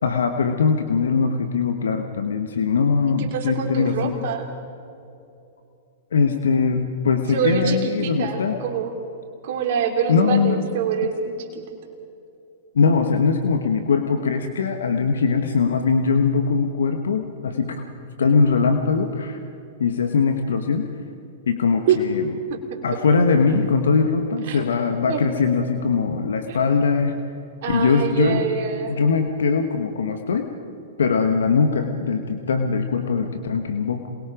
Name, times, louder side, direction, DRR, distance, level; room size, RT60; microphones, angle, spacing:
voice 1, 0.0-4.2 6.1-8.6 10.1-10.6 12.7-17.8 18.2-19.4 19.8-20.9 21.5-22.2 22.8-27.2 27.7-28.5 28.9-30.5 31.0-34.1, left 5 dB, 75° left, 6 dB, 1.4 m, -21 dB
voice 2, 3.2-4.5 7.3-8.9 9.4-11.6 21.9-22.0 22.5-22.6 24.5-24.6 25.1-25.4 26.5-26.6 27.6-29.0 31.3-31.6, right 7 dB, 60° right, 2 dB, 2.9 m, -25 dB
27.5 x 21.5 x 5.1 m, 2.7 s
hypercardioid pair, 110°, 0 cm